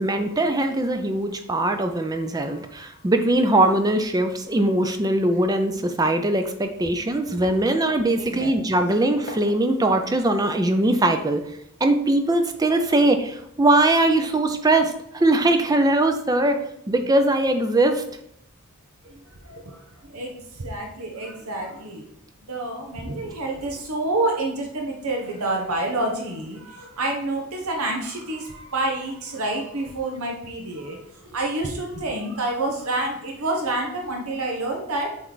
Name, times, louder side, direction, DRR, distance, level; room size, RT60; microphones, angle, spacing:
voice 1, 0.0-11.4 11.8-16.6 16.9-18.0, right 2 dB, 15° right, 7 dB, 0.4 m, -21 dB
sound 1, 7.4-7.8 8.1-8.2 9.3-9.7 10.8-11.0 12.7-13.1 14.2-14.4 15.7-15.8, left 3 dB, 35° left, 0.5 m, -43 dB
voice 2, 8.2-8.5 19.0-22.1 22.5-35.2, right 2 dB, 80° right, 1 dB, 1.0 m, -28 dB
7.9 x 3.2 x 3.9 m, 0.74 s
head